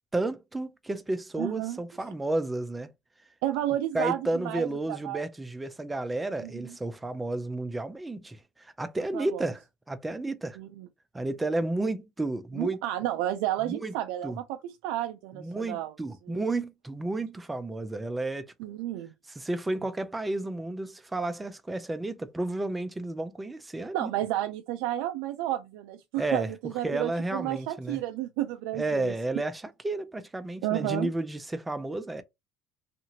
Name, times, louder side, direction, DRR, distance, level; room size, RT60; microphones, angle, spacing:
voice 1, 0.1-2.9 3.9-10.6 11.1-12.8 13.6-13.9 14.2-14.4 15.3-18.5 19.3-24.1 26.2-28.0 28.7-32.2, right 2 dB, 10° right, 0.4 m, -32 dB
voice 2, 1.4-1.8 3.4-5.2 6.4-6.5 9.1-9.4 10.6-10.9 12.6-15.9 16.3-16.4 18.6-19.1 23.9-29.1 30.6-31.1, right 13 dB, 85° right, 0.3 m, -31 dB
2.7 x 2.5 x 2.8 m
cardioid pair, 115°, 0 cm